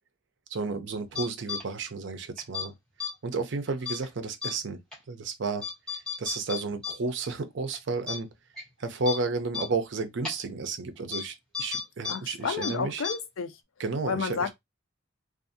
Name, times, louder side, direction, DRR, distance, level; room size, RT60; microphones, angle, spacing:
voice 1, 0.5-2.7 3.2-4.8 5.1-8.4 8.8-13.0 13.8-14.5, right 3 dB, 60° right, 0.5 m, -32 dB
sound 1, 1.1-1.6 2.4-2.6 3.0-3.1 3.9-4.0 4.4-4.5 4.9-5.0 5.6-6.9 7.2-7.3 7.7-7.8 8.1-8.2 8.6-8.7 9.1-9.2 9.5-9.6 10.2-10.3 11.1-11.2 11.5-12.1 12.4-12.7 13.0-13.1, left 6 dB, 5° left, 0.8 m, -32 dB
voice 2, 12.1-13.6 14.1-14.5, left 5 dB, 75° left, 0.5 m, -31 dB
2.6 x 2.4 x 2.6 m
head